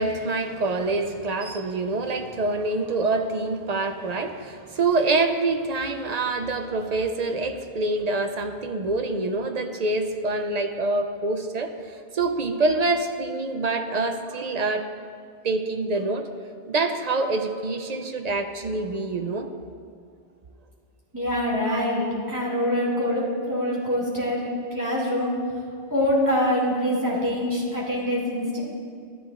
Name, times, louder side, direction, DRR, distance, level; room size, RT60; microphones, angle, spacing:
voice 1, 0.0-14.9 15.4-16.3 16.7-19.5 21.6-21.8 23.9-24.0, right 3 dB, 50° right, 6 dB, 0.6 m, -26 dB
voice 2, 21.1-25.3 25.9-28.6, left 1 dB, 20° right, -6 dB, 2.4 m, -25 dB
13.0 x 10.0 x 2.5 m, 2.3 s
omnidirectional pair, 1.0 m